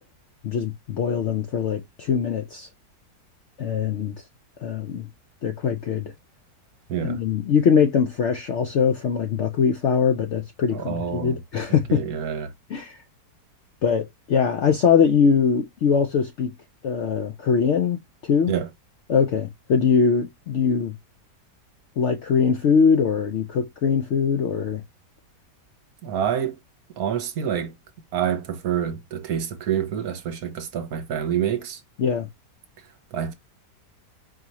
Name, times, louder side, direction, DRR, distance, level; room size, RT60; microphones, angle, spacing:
voice 1, 0.4-2.7 3.6-4.2 4.6-5.1 5.4-6.1 7.0-12.0 12.7-13.0 13.8-16.5 16.8-18.5 19.1-20.9 22.0-24.8 32.0-32.3, left 6 dB, 80° left, 0.6 m, -22 dB
voice 2, 6.9-7.2 10.7-11.4 11.7-12.5 18.5-18.7 26.0-26.6 27.0-27.7 28.1-31.8 33.1-33.3, right 9 dB, 60° right, 1.2 m, -27 dB
4.8 x 2.8 x 2.9 m
omnidirectional pair, 1.9 m